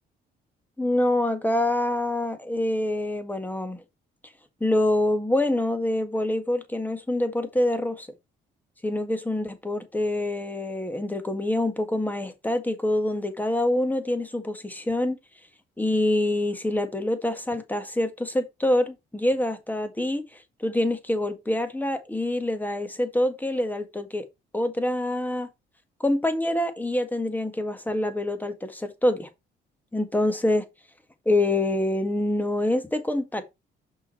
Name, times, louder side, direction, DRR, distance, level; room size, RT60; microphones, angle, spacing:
voice 1, 0.8-3.8 4.6-8.1 8.8-15.2 15.8-24.3 24.5-25.5 26.0-29.3 29.9-30.7 31.3-33.4, left 1 dB, 10° left, 1.8 m, -26 dB
6.4 x 5.8 x 4.4 m
cardioid pair, 90°, 20 cm